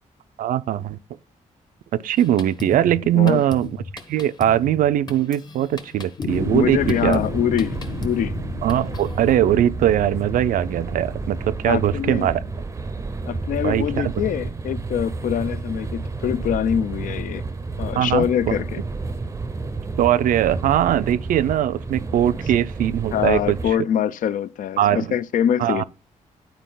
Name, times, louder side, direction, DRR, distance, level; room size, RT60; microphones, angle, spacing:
voice 1, 0.4-1.0 1.9-3.7 4.1-7.2 8.6-12.4 13.6-14.1 18.0-18.6 20.0-23.8 24.8-25.1 25.6-25.8, right 11 dB, 90° right, 0.4 m, -21 dB
Drum kit, 2.2-9.4, left 3 dB, 30° left, 1.0 m, -37 dB
sound 1, 6.2-12.6, left 5 dB, 60° left, 1.1 m, -34 dB
sound 2, 6.3-23.7, right 3 dB, 20° right, 0.5 m, -31 dB
voice 2, 6.5-8.3 11.6-12.3 13.2-17.4 17.8-18.8 23.1-25.8, left 9 dB, 75° left, 0.4 m, -24 dB
10.5 x 4.5 x 3.8 m
cardioid pair, 125°, 14 cm